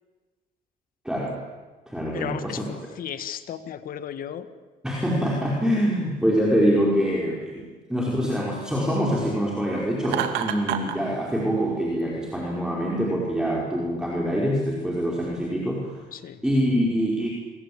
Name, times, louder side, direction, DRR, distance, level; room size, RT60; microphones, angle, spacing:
voice 1, 1.1-1.4 1.9-2.6 4.8-16.0 16.4-17.3, equal, 5° right, -3 dB, 5.2 m, -25 dB
voice 2, 2.1-4.5 16.1-16.4, left 9 dB, 55° left, 11 dB, 1.9 m, -35 dB
Laughter, 10.0-11.0, right 10 dB, 85° right, 2.5 m, -27 dB
27.5 x 23.0 x 8.9 m, 1.3 s
cardioid pair, 110°, 17 cm